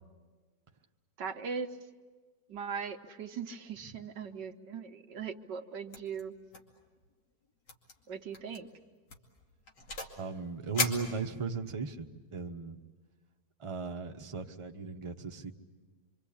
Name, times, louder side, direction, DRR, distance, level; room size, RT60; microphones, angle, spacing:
voice 1, 1.2-1.7 2.5-6.3 8.1-8.7, right 6 dB, 85° right, 5 dB, 1.7 m, -39 dB
sound 1, 5.9-6.2 6.5-6.8 7.0-7.1 7.7-7.9 8.3-8.6 9.1-10.2 10.7-11.7, left 3 dB, 80° left, 3.1 m, -37 dB
voice 2, 10.2-12.8 13.6-15.5, right 5 dB, 20° right, 4 dB, 0.9 m, -37 dB
26.0 x 25.5 x 8.6 m, 1.4 s
omnidirectional pair, 1.8 m